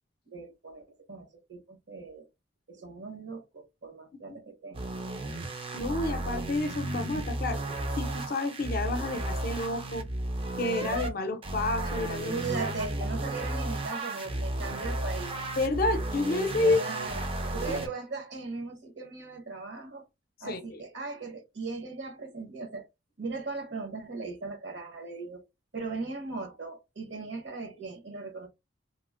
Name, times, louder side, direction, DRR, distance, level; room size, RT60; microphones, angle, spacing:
voice 1, 0.3-2.3 2.7-4.9 12.2-15.4 16.6-17.2 17.5-20.0 20.4-22.9 23.2-25.4 25.7-28.5, right 3 dB, 65° right, 0.9 m, -38 dB
sound 1, 4.7-11.1 11.4-17.9, right 1 dB, 30° right, 0.4 m, -33 dB
voice 2, 5.7-7.6 8.0-10.1 10.6-12.4 15.6-16.8 20.5-20.8, left 2 dB, 50° left, 0.5 m, -29 dB
3.0 x 2.4 x 2.4 m
head